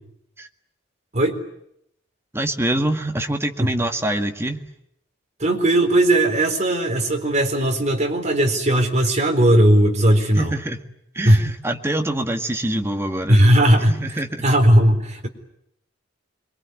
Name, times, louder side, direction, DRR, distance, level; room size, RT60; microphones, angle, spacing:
voice 1, 2.3-4.6 10.3-10.8 11.1-13.4 13.7-14.4, right 1 dB, 15° right, 5 dB, 1.8 m, -25 dB
voice 2, 5.4-10.5 11.2-11.4 13.3-13.9 14.4-15.3, right 1 dB, 35° right, 4 dB, 4.1 m, -17 dB
26.5 x 23.0 x 9.6 m, 0.77 s
head